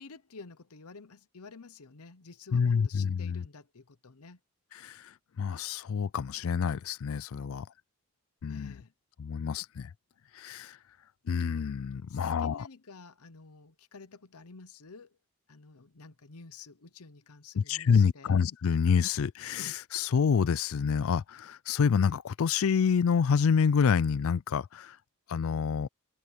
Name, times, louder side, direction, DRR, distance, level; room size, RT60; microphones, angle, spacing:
voice 1, 0.0-4.4 8.5-8.9 12.1-15.2 15.5-18.3, left 4 dB, 85° left, 0.9 m, -50 dB
voice 2, 2.5-3.4 4.8-5.1 5.4-7.7 8.4-8.8 9.2-9.9 10.3-10.8 11.3-12.7 17.5-25.0 25.3-25.9, left 6 dB, 70° left, 0.4 m, -27 dB
head